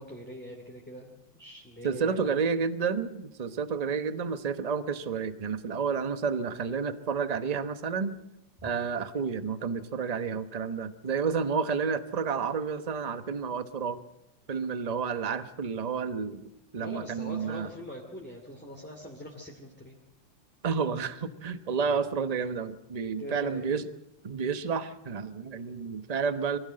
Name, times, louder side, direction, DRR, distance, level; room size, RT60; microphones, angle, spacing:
voice 1, 0.0-2.3 8.6-8.7 16.7-20.0 21.8-22.0 23.2-23.7, equal, 5° left, -1 dB, 2.5 m, -43 dB
voice 2, 1.8-8.2 8.6-14.0 14.5-17.7 20.6-23.9 24.2-26.6, right 5 dB, 30° right, 11 dB, 0.8 m, -30 dB
23.5 x 16.0 x 7.7 m, 0.84 s
omnidirectional pair, 2.0 m